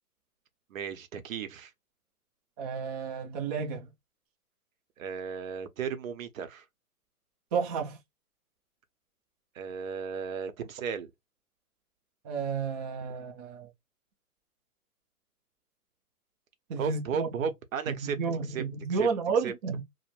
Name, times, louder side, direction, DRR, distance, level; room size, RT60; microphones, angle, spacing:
voice 1, 0.7-1.7 5.0-6.6 9.5-11.1 16.8-18.2 18.5-18.6 19.0-19.1 19.4-19.5, right 6 dB, 60° right, 0.8 m, -34 dB
voice 2, 2.6-3.9 7.5-8.0 12.2-13.7 16.7-17.3 17.9-19.8, right 5 dB, 25° right, 0.5 m, -31 dB
3.1 x 2.1 x 2.5 m
hypercardioid pair, 130°, 46 cm